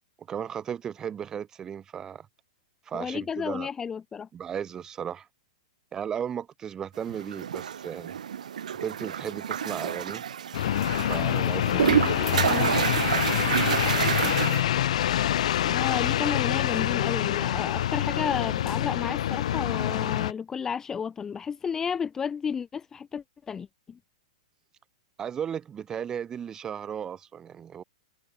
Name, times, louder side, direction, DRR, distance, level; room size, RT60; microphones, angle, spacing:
voice 1, 0.2-2.3 2.9-3.7 4.3-5.3 5.9-8.2 8.7-10.2 11.0-12.6 25.2-27.8, right 8 dB, 15° right, 2.5 m, -35 dB
voice 2, 2.9-4.3 12.5-12.7 15.6-24.0, left 6 dB, 15° left, 0.7 m, -32 dB
sound 1, 7.1-14.6, right 8 dB, 85° right, 2.6 m, -28 dB
sound 2, 10.5-20.3, left 11 dB, 65° left, 2.3 m, -26 dB
open air
hypercardioid pair, 155°, 4 cm